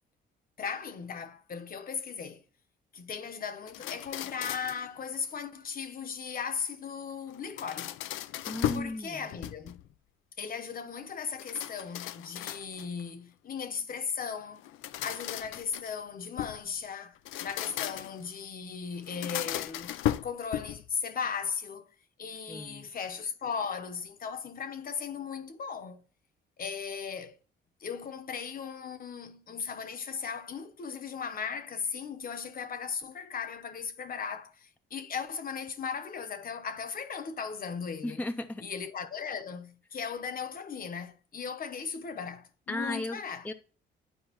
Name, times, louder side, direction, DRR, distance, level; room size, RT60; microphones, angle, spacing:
voice 1, 0.6-2.4 2.9-8.0 8.7-9.8 10.4-14.6 15.0-20.0 20.2-21.9 22.2-26.0 26.6-27.4 27.8-38.3 38.6-43.5, left 6 dB, 45° left, 0.9 m, -37 dB
sound 1, 3.7-4.9 7.3-9.0 9.3-9.9 11.4-13.0 14.6-16.6 17.2-18.3 19.0-20.9, left 13 dB, 85° left, 0.4 m, -36 dB
voice 2, 8.5-9.2 22.5-22.9 38.0-38.6 42.7-43.5, left 2 dB, 5° left, 0.5 m, -35 dB
10.5 x 4.5 x 2.9 m
cardioid pair, 90°, 20 cm